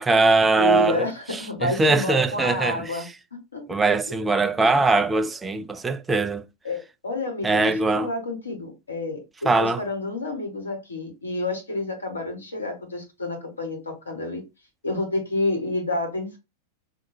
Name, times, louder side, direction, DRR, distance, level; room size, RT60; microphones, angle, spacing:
voice 1, 0.0-1.1 1.6-3.0 3.7-6.4 7.4-8.1 9.5-9.8, right 3 dB, 15° right, 0.4 m, -21 dB
voice 2, 0.6-3.1 3.5-3.6 4.1-4.2 6.6-14.4 14.8-16.4, left 2 dB, 75° left, 1.6 m, -29 dB
5.8 x 2.9 x 2.7 m
figure-of-eight pair, 90°, 0 cm